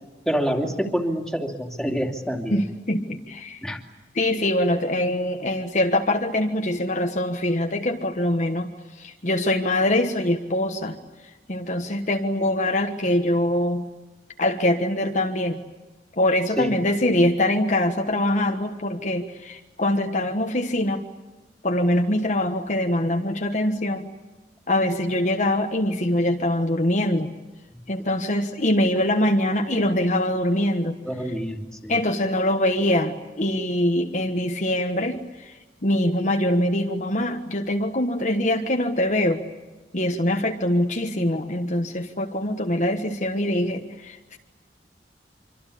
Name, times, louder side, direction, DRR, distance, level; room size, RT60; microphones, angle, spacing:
voice 1, 0.3-2.6 3.6-3.8 16.6-16.7 27.7-27.8 31.0-32.0, equal, 5° left, 1 dB, 2.7 m, -27 dB
voice 2, 2.5-3.6 4.1-8.7 9.0-11.0 11.5-13.8 14.4-15.6 16.2-21.0 21.6-24.1 24.7-27.3 27.9-31.0 31.9-35.5 35.8-39.4 39.9-44.4, left 1 dB, 45° left, 3 dB, 1.4 m, -23 dB
26.0 x 25.0 x 8.5 m, 1.2 s
head